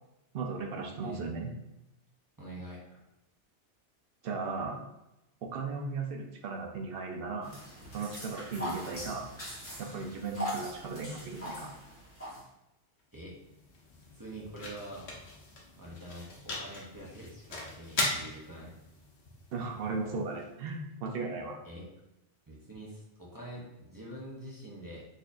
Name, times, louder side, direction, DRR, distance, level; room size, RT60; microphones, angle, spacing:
voice 1, 0.3-1.5 4.2-4.8 5.4-7.5 7.9-9.3 9.8-11.7 19.5-21.6, right 4 dB, 65° right, 2 dB, 0.7 m, -36 dB
voice 2, 2.4-3.0 13.1-13.4 14.1-15.1 15.8-18.7 21.6-21.9 22.5-25.1, right 1 dB, 25° right, -5 dB, 0.5 m, -45 dB
sound 1, 7.4-12.4, equal, 10° left, 1.1 m, -41 dB
sound 2, 13.0-21.1, left 2 dB, 65° left, 1.0 m, -40 dB
4.0 x 2.7 x 2.5 m, 0.91 s
omnidirectional pair, 1.2 m